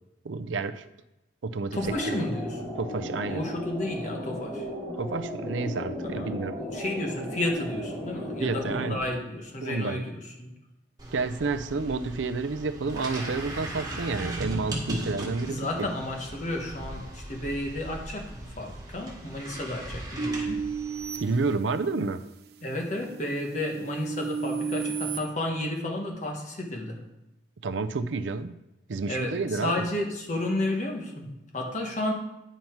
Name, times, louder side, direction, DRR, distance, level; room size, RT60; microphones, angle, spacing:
voice 1, 0.2-0.8 1.4-2.2 2.8-3.5 5.0-6.6 8.4-9.0 9.6-10.0 11.1-15.7 21.2-22.2 27.6-28.6 28.9-29.9, right 4 dB, 85° right, 11 dB, 0.5 m, -30 dB
voice 2, 1.7-2.7 3.3-4.7 6.0-10.5 15.4-20.7 22.6-27.0 29.1-32.1, left 1 dB, 40° left, 0 dB, 1.4 m, -32 dB
sound 1, 1.8-9.0, left 1 dB, 20° left, 2.5 m, -36 dB
sound 2, 11.0-21.5, right 1 dB, 20° right, 1.7 m, -38 dB
sound 3, 20.2-22.1 22.7-25.2, right 5 dB, 55° right, 0.8 m, -33 dB
9.2 x 5.5 x 4.6 m, 0.91 s
head